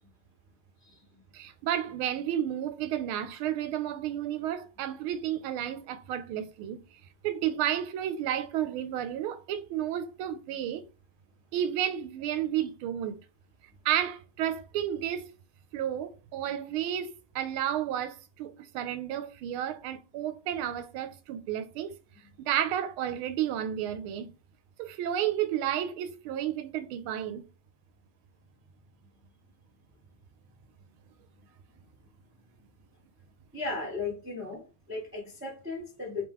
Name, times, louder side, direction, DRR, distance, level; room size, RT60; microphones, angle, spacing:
voice 1, 0.8-1.2 33.5-36.3, left 3 dB, 10° right, 0.7 m, -36 dB
voice 2, 1.3-6.8 7.2-10.8 11.5-13.2 13.8-15.3 15.7-21.9 22.5-24.3 24.8-27.4, right 10 dB, 85° right, 1.4 m, -32 dB
3.3 x 2.9 x 3.5 m
omnidirectional pair, 2.3 m